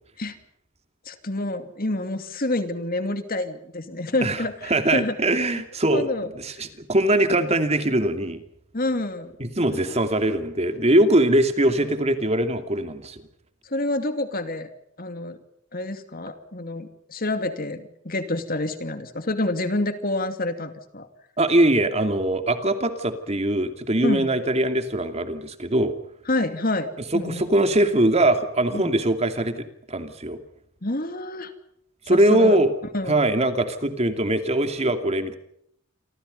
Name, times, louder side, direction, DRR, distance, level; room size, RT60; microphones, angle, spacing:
voice 1, 1.0-5.2 5.5-6.3 8.7-9.3 9.7-10.1 13.6-14.7 15.0-15.4 15.7-21.1 24.0-24.3 26.3-27.4 28.7-28.9 30.8-31.5 32.1-32.6 32.9-33.2, left 2 dB, 45° left, 9 dB, 2.6 m, -28 dB
voice 2, 4.7-6.1 6.4-8.4 9.4-13.2 21.4-25.9 27.1-30.4 32.1-32.7 33.1-35.4, right 1 dB, 30° right, 8 dB, 2.7 m, -21 dB
28.5 x 25.0 x 5.4 m, 0.71 s
head